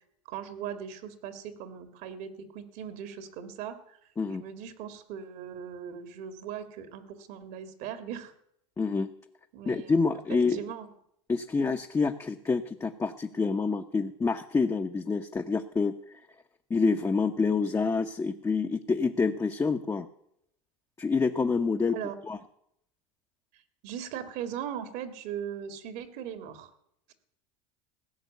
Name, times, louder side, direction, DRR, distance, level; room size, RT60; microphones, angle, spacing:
voice 1, 0.3-4.0 4.4-8.3 9.5-9.9 10.3-10.9 21.9-22.2 23.8-26.7, right 8 dB, 65° right, 10 dB, 1.9 m, -39 dB
voice 2, 8.8-9.1 9.7-10.6 11.3-15.9 16.7-20.1 21.0-22.0 22.3-22.4, left 4 dB, 15° left, 5 dB, 0.8 m, -27 dB
16.0 x 6.2 x 9.3 m, 0.74 s
supercardioid pair, 100°, 18 cm